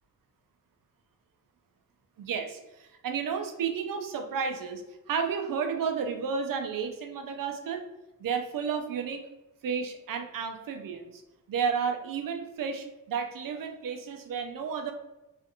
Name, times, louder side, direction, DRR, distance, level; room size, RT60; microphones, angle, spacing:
voice 1, 2.2-4.8 5.1-7.8 8.2-9.2 9.6-11.2 11.5-14.9, right 6 dB, 65° right, 5 dB, 0.5 m, -32 dB
2.6 x 2.4 x 2.7 m, 0.99 s
cardioid pair, 75°, 36 cm